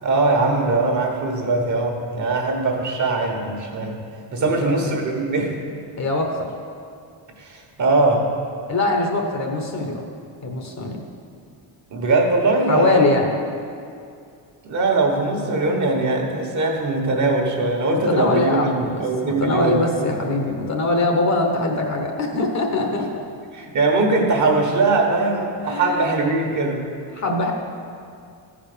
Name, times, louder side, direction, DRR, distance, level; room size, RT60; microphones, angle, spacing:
voice 1, 0.0-4.0 4.3-5.5 7.4-8.2 11.9-13.1 14.6-20.1 23.5-26.8, right 3 dB, 40° right, 1 dB, 1.5 m, -21 dB
voice 2, 4.4-4.9 6.0-6.5 8.7-10.0 10.4-11.0 12.7-13.3 17.9-23.2 25.6-26.1 27.1-27.5, left 2 dB, 35° left, 2 dB, 1.1 m, -22 dB
14.5 x 5.0 x 6.8 m, 2.4 s
cardioid pair, 160°, 45 cm